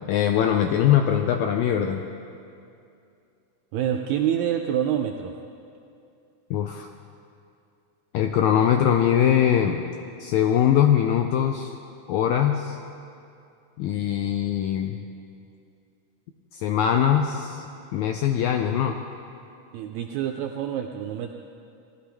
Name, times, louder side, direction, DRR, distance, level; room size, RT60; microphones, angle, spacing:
voice 1, 0.1-2.0 6.5-6.9 8.1-9.8 10.2-11.7 12.1-12.8 13.8-15.0 16.5-17.6 17.9-19.0, left 9 dB, 85° left, 4 dB, 1.6 m, -22 dB
voice 2, 3.7-5.3 19.7-21.3, right 10 dB, 85° right, 4 dB, 1.6 m, -27 dB
18.0 x 12.0 x 3.4 m, 2.6 s
omnidirectional pair, 3.8 m